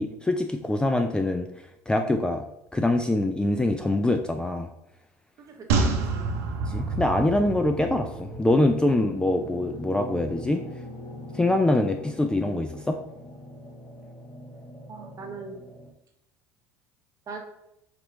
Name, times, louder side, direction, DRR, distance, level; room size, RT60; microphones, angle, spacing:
voice 1, 0.0-1.5 1.9-2.4 2.7-4.7 6.7-10.6 11.3-13.0, left 1 dB, 10° left, 5 dB, 0.4 m, -24 dB
voice 2, 5.4-6.2 14.9-15.6 17.3-17.4, right 4 dB, 40° right, 2 dB, 1.2 m, -41 dB
sound 1, 5.7-9.1 9.4-9.5, right 3 dB, 75° right, 0.7 m, -28 dB
sound 2, 7.3-15.9, left 1 dB, 45° left, 1.2 m, -42 dB
5.0 x 2.9 x 3.1 m, 0.84 s
hypercardioid pair, 80°, 9 cm